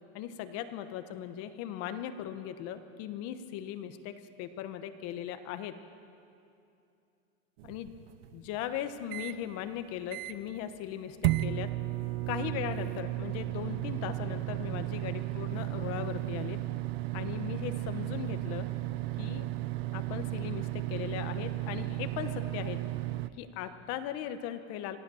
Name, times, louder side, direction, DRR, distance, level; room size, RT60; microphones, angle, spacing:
voice 1, 0.1-5.7 7.6-7.9 8.3-11.7 12.3-16.6 17.1-18.7 19.2-19.5 19.9-22.8 23.4-25.0, left 10 dB, 40° left, 9 dB, 1.2 m, -38 dB
sound 1, 7.6-9.4 9.8-9.9 10.1-10.6 11.2-23.3, right 17 dB, 60° right, 0.7 m, -34 dB
26.5 x 17.0 x 7.1 m, 2.6 s
supercardioid pair, 165°, 36 cm